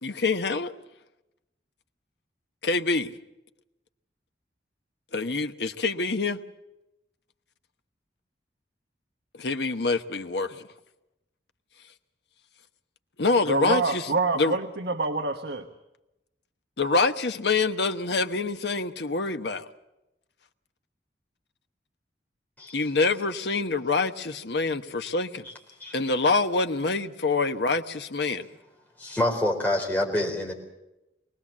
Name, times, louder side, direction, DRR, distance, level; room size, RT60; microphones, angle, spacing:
voice 1, 0.0-0.7 2.6-3.2 5.1-6.4 9.3-10.7 13.2-14.0 14.3-14.6 16.8-19.7 22.7-25.5 25.9-28.5, left 3 dB, 75° left, 8 dB, 1.1 m, -26 dB
voice 2, 13.4-15.7, right 3 dB, 70° right, 6 dB, 1.2 m, -27 dB
voice 3, 29.0-30.5, left 1 dB, 10° left, -1 dB, 4.1 m, -26 dB
24.0 x 18.5 x 7.4 m, 0.94 s
head